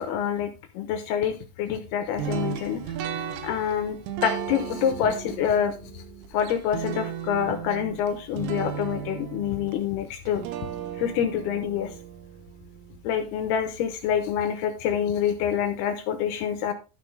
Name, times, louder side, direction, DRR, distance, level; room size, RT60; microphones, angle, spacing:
voice 1, 0.0-2.8 3.1-6.0 6.3-10.4 11.0-11.9 13.0-16.7, left 8 dB, 75° left, 8 dB, 2.4 m, -27 dB
sound 1, 2.2-13.2, right 8 dB, 80° right, 3.1 m, -35 dB
12.5 x 5.9 x 3.3 m, 0.30 s
omnidirectional pair, 5.4 m